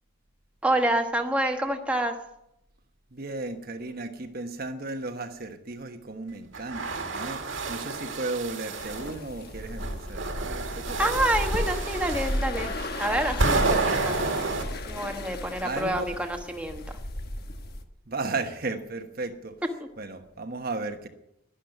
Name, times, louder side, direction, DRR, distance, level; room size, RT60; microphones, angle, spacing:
voice 1, 0.6-2.2 11.0-12.7 13.0-14.1 14.9-16.8, right 1 dB, 5° right, 3 dB, 1.2 m, -27 dB
voice 2, 3.1-11.1 15.6-16.1 18.1-19.6 20.0-21.1, right 3 dB, 45° right, 6 dB, 1.2 m, -35 dB
sound 1, 6.5-9.1 9.8-14.6, right 3 dB, 65° right, 2.1 m, -30 dB
sound 2, 8.8-17.8, left 1 dB, 50° left, 1.2 m, -34 dB
12.0 x 11.5 x 8.9 m, 0.81 s
head